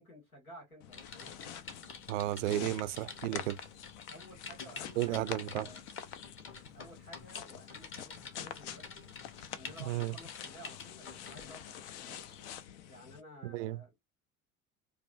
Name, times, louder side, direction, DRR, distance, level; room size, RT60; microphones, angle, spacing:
voice 1, 0.0-1.3 4.1-5.8 6.7-9.1 9.5-12.3 12.9-14.0, equal, 85° left, 1.9 m, -54 dB
sound 1, 0.8-13.2, left 9 dB, 55° left, 0.6 m, -47 dB
Typing, 0.9-11.6 12.2-12.4, left 5 dB, 30° left, 1.1 m, -49 dB
voice 2, 2.1-3.6 5.0-5.7 9.9-10.2 13.4-13.8, right 16 dB, 60° right, 0.5 m, -33 dB
4.7 x 2.4 x 2.4 m
figure-of-eight pair, 70°, 42 cm